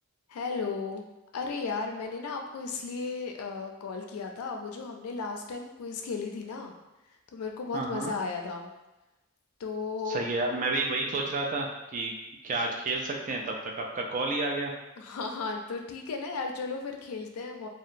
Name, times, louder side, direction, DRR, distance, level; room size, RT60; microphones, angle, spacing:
voice 1, 0.3-1.0 1.3-6.8 7.3-8.7 9.6-10.2 15.0-17.7, left 4 dB, 70° left, 3 dB, 0.4 m, -35 dB
voice 2, 7.7-8.1 10.1-11.7 11.9-12.1 12.4-14.7, right 2 dB, 35° right, 1 dB, 0.3 m, -30 dB
2.8 x 2.1 x 2.4 m, 1.0 s
head